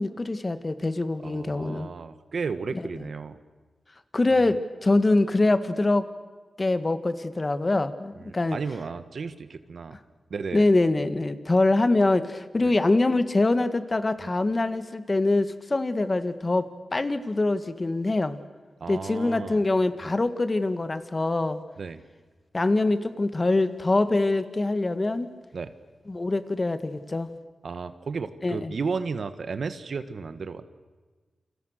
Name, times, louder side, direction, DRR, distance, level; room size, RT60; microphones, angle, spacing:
voice 1, 0.0-1.9 4.1-6.1 6.6-8.6 10.5-18.4 18.9-21.6 22.5-25.3 26.1-27.3 28.4-28.7, left 2 dB, 30° left, 11 dB, 1.7 m, -24 dB
voice 2, 1.2-3.4 4.4-4.6 8.2-9.9 10.3-10.6 12.6-12.7 18.8-19.6 21.8-22.0 25.5-25.7 27.6-30.6, right 5 dB, 65° right, 11 dB, 1.5 m, -33 dB
29.0 x 27.5 x 6.6 m, 1.3 s
wide cardioid pair, 95°, 0 cm